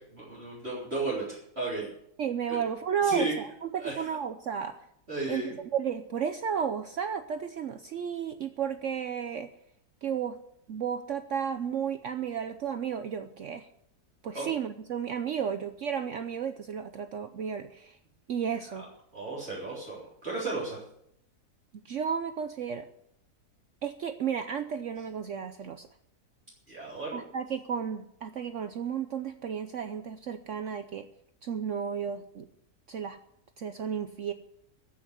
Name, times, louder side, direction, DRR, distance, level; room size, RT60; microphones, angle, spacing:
voice 1, 0.0-1.9 2.5-2.6 3.0-3.3 3.8-4.1 5.1-5.6 14.3-14.5 19.1-20.8 26.7-27.2, right 2 dB, 40° right, -7 dB, 3.9 m, -34 dB
voice 2, 2.2-4.8 5.3-9.5 10.0-10.4 10.7-13.7 14.2-18.0 18.3-18.8 21.8-22.9 23.8-25.9 27.1-31.1 31.4-32.5 32.9-33.2 33.6-34.3, right 7 dB, 60° right, 9 dB, 0.9 m, -33 dB
14.5 x 6.3 x 9.9 m, 0.75 s
omnidirectional pair, 1.7 m